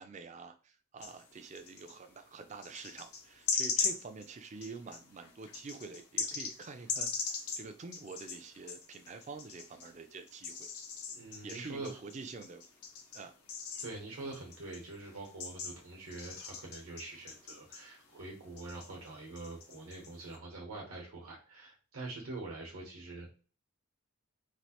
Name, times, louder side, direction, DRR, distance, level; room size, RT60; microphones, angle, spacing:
voice 1, 0.0-10.7 11.4-12.6 13.1-13.3, right 4 dB, 30° right, 8 dB, 0.3 m, -47 dB
sound 1, 1.0-2.0 2.6-9.9 10.3-18.3 18.6-20.4, left 5 dB, 85° left, 0.8 m, -40 dB
voice 2, 11.1-12.0 13.8-23.3, right 2 dB, 80° right, 0 dB, 0.9 m, -45 dB
3.1 x 2.4 x 2.8 m, 0.36 s
head